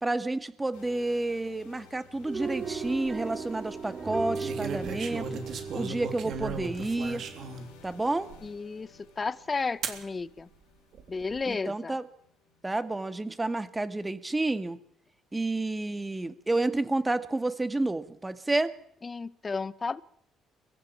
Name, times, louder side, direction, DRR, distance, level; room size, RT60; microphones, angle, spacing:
voice 1, 0.0-5.4 5.7-7.2 7.8-8.3 11.5-12.0 12.6-14.8 15.3-18.7, right 2 dB, 15° right, 11 dB, 1.9 m, -30 dB
sound 1, 0.7-14.6, left 6 dB, 90° left, 4.6 m, -54 dB
sound 2, 2.2-8.5, right 5 dB, 30° right, 2.5 m, -38 dB
sound 3, 2.7-3.1 4.3-7.7 8.3-8.4 9.8-10.0 10.9-11.4, right 5 dB, 60° right, 3.4 m, -37 dB
voice 2, 8.4-10.5 11.1-12.0 19.0-20.0, left 4 dB, 30° left, 18 dB, 1.0 m, -33 dB
23.0 x 15.0 x 8.7 m, 0.71 s
supercardioid pair, 75°, 0 cm